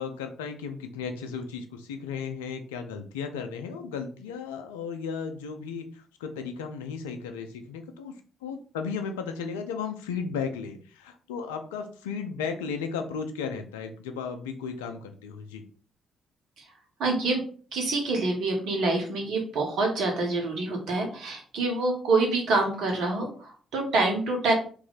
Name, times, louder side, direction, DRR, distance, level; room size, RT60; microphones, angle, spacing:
voice 1, 0.0-8.1 8.4-15.6, left 6 dB, 85° left, 6 dB, 0.4 m, -35 dB
voice 2, 17.0-17.4 17.7-24.5, right 3 dB, 70° right, 2 dB, 1.1 m, -26 dB
3.0 x 2.6 x 4.0 m, 0.42 s
hypercardioid pair, 45°, 0 cm